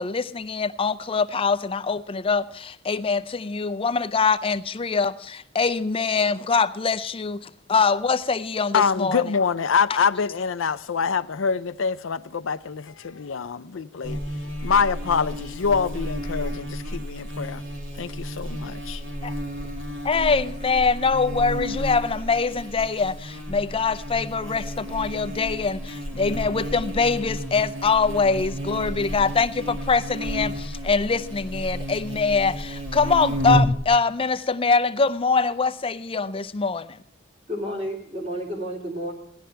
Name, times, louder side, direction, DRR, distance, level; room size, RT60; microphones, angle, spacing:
voice 1, 0.0-2.4 2.9-5.1 5.6-7.4 7.7-9.2 20.1-23.1 23.5-24.6 24.9-25.8 26.2-29.5 29.9-30.5 30.9-32.5 32.9-36.8, left 4 dB, 30° left, 0.5 m, -23 dB
voice 2, 8.7-14.2 14.6-17.6 18.0-19.0, left 6 dB, 85° left, 0.6 m, -25 dB
Buzz, 14.0-33.8, equal, 85° right, 2.1 m, -31 dB
voice 3, 37.5-39.1, equal, 35° right, 3.4 m, -31 dB
17.0 x 11.5 x 3.4 m
head